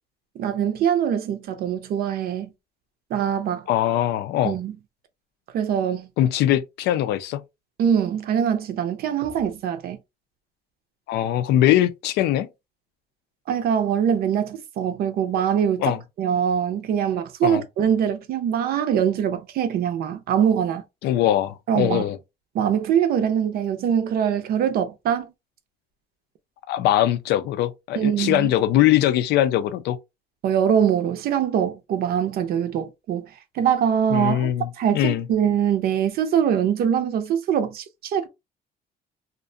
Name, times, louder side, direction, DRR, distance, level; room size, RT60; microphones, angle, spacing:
voice 1, 0.4-2.5 3.1-3.7 4.4-4.7 5.5-6.1 7.8-10.0 13.5-20.8 21.7-22.1 22.5-25.3 28.0-28.5 30.4-33.3 33.5-34.5 34.8-38.3, right 8 dB, 65° right, 0.5 m, -23 dB
voice 2, 3.7-4.6 6.2-7.4 11.1-12.5 15.8-16.0 17.4-17.6 21.0-22.2 26.7-30.0 34.1-35.2, left 12 dB, 75° left, 0.4 m, -21 dB
2.5 x 2.1 x 2.6 m
cardioid pair, 110°, 17 cm